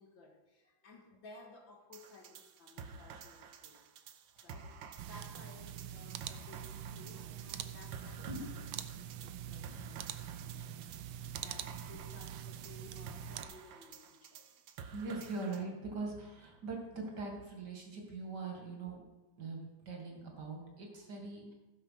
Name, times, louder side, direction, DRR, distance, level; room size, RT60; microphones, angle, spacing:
voice 1, 0.0-3.8 4.4-8.7 8.9-14.4, left 2 dB, 65° left, 1 dB, 2.6 m, -57 dB
sound 1, 1.9-15.6, right 6 dB, 70° right, 1.5 m, -51 dB
sound 2, 5.0-13.4, right 10 dB, 90° right, 1.5 m, -44 dB
voice 2, 8.3-8.6 14.9-19.0 19.4-21.5, right 3 dB, 50° right, 1 dB, 2.6 m, -42 dB
15.5 x 7.0 x 5.8 m, 1.1 s
omnidirectional pair, 2.3 m